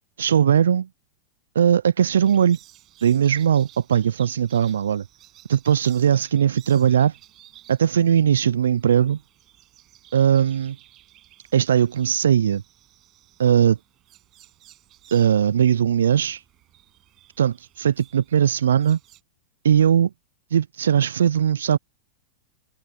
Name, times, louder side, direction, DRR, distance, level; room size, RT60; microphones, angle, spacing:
voice 1, 0.2-0.9 1.6-2.6 3.0-5.0 5.5-7.1 7.7-9.2 10.1-10.8 11.5-12.6 13.4-13.8 15.1-16.4 17.4-19.0 19.6-20.1 20.5-21.8, right 9 dB, 75° right, 0.4 m, -19 dB
sound 1, 2.2-19.2, right 14 dB, 40° right, 7.7 m, -54 dB
hypercardioid pair, 95°, 0 cm